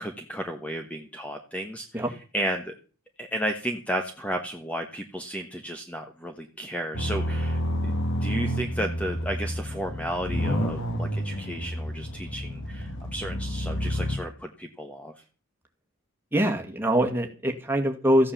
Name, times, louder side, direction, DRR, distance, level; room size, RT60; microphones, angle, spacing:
voice 1, 0.0-2.7 3.2-15.1, equal, 5° left, 5 dB, 1.2 m, -33 dB
sound 1, 6.9-14.2, equal, 60° left, 2.3 m, -29 dB
voice 2, 16.3-18.3, equal, 10° right, 2 dB, 2.2 m, -24 dB
15.0 x 8.6 x 7.3 m, 0.37 s
head